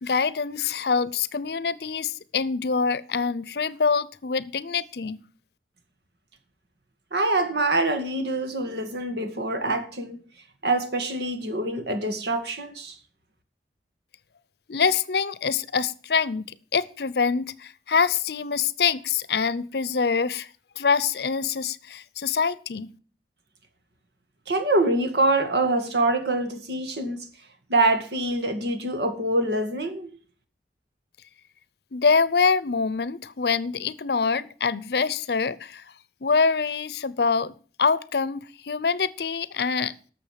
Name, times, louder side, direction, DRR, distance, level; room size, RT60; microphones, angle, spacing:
voice 1, 0.0-5.2 14.7-20.5 20.8-22.9 31.9-35.8 36.2-37.5 37.8-39.9, left 5 dB, 70° left, 0.6 m, -25 dB
voice 2, 7.1-10.2 10.6-13.0 24.5-27.3 27.7-30.1, right 2 dB, 75° right, 2.0 m, -25 dB
12.0 x 6.9 x 7.5 m
head